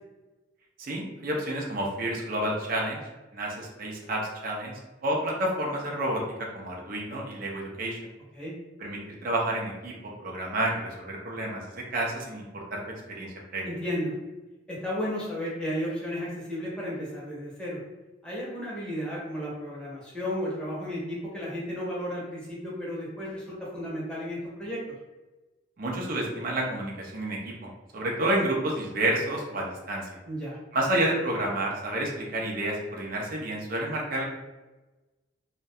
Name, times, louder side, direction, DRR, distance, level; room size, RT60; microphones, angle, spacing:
voice 1, 0.8-3.0 3.3-4.7 5.0-6.2 6.5-8.0 8.8-9.9 10.2-12.8 13.1-13.7 25.8-30.1 30.7-34.2, right 1 dB, 50° right, -2 dB, 0.5 m, -30 dB
voice 2, 13.6-14.1 14.7-17.8 18.2-24.8 30.2-30.6, equal, 5° left, -7 dB, 0.7 m, -33 dB
2.3 x 2.1 x 2.6 m, 1.1 s
head